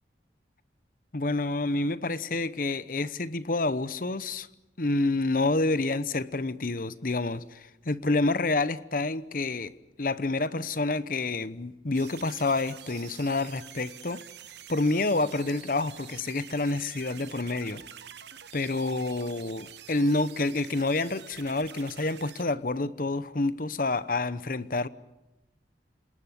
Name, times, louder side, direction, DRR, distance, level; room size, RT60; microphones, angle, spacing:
voice 1, 1.1-4.5 4.8-14.2 14.7-17.8 18.5-24.9, left 2 dB, 50° left, 0.9 m, -28 dB
sound 1, 11.9-22.4, right 10 dB, 75° right, 1.2 m, -47 dB
27.5 x 20.0 x 9.6 m
head